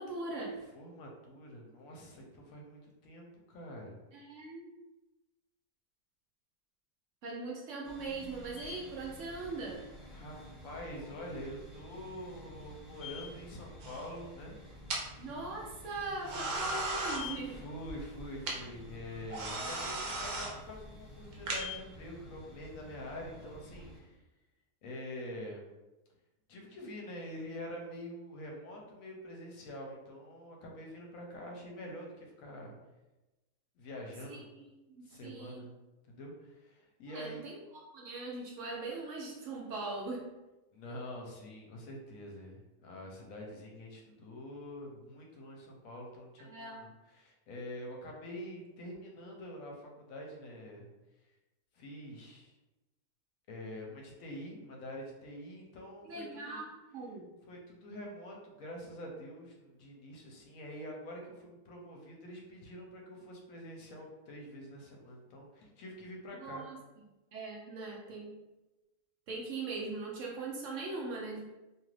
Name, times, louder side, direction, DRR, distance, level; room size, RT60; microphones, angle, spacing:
voice 1, 0.0-0.6 4.1-4.7 7.2-9.8 15.2-17.6 34.3-35.7 37.1-40.3 46.4-46.8 56.0-57.3 66.4-66.8 67.3-68.4 69.3-71.4, right 3 dB, 65° right, -2 dB, 0.8 m, -41 dB
voice 2, 0.7-4.0 10.1-10.4 10.6-14.6 17.4-24.2 24.8-25.7 26.5-32.8 33.8-34.5 35.0-35.7 36.0-37.5 40.7-50.9 51.7-52.5 53.5-56.6 57.5-66.6, left 1 dB, 70° left, 0 dB, 1.0 m, -46 dB
sound 1, 7.8-24.0, left 3 dB, ahead, 1.1 m, -49 dB
sound 2, 13.8-14.2 14.9-15.0 16.2-17.2 18.5-18.6 19.3-20.5 21.3-21.6, right 2 dB, 85° right, 1.2 m, -36 dB
2.8 x 2.4 x 3.1 m, 1.1 s
omnidirectional pair, 1.6 m